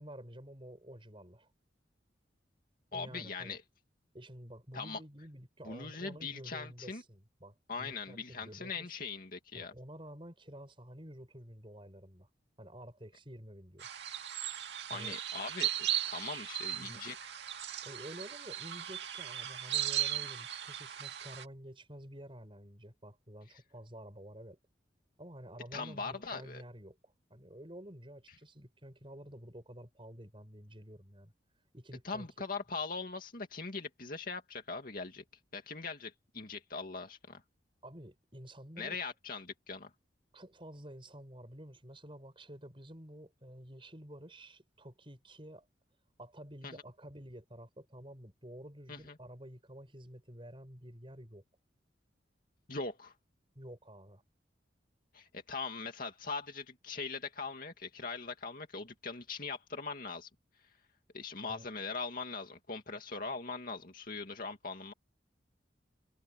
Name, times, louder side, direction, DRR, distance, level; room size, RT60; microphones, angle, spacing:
voice 1, 0.0-1.5 2.9-3.6 4.1-8.9 9.5-12.3 12.6-13.9 14.9-15.2 16.6-17.0 17.8-24.6 25.2-31.3 31.7-32.3 37.8-39.0 40.3-45.6 46.2-51.4 53.5-54.2 61.4-61.7, right 1 dB, 30° right, 6.9 m, -50 dB
voice 2, 2.9-3.6 4.7-5.0 5.6-7.0 7.7-9.7 14.9-17.2 25.7-26.6 32.0-35.2 35.5-37.4 38.8-39.9 46.6-46.8 48.9-49.1 52.7-53.1 55.1-60.3 61.1-64.9, left 4 dB, 50° left, 2.3 m, -41 dB
sound 1, 13.8-21.4, right 11 dB, 70° right, 2.0 m, -37 dB
head